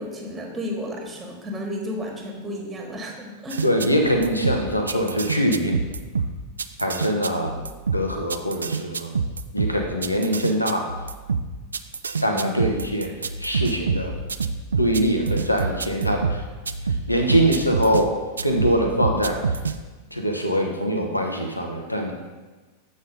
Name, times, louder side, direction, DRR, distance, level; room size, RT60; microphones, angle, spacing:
voice 1, 0.0-3.6 12.3-12.6, equal, 15° right, 1 dB, 1.4 m, -32 dB
sound 1, 3.5-18.0 18.4-19.8, right 4 dB, 75° right, 0.3 m, -27 dB
voice 2, 3.6-5.7 6.8-7.6 7.9-9.1 9.5-10.9 12.2-13.1 13.4-14.1 14.8-16.4 17.1-18.1 18.4-19.4 20.1-22.1, equal, 85° left, 2 dB, 0.8 m, -23 dB
7.5 x 4.2 x 5.0 m, 1.3 s
figure-of-eight pair, 90°, 0 cm